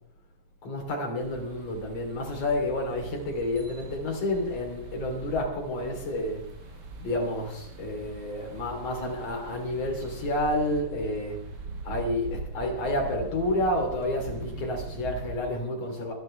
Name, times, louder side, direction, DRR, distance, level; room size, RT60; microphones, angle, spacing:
voice 1, 0.6-11.4 11.8-16.1, left 1 dB, 50° left, 1 dB, 4.1 m, -30 dB
sound 1, 1.2-15.6, right 3 dB, 50° right, 1.3 m, -41 dB
25.5 x 11.0 x 3.3 m, 0.82 s
omnidirectional pair, 3.9 m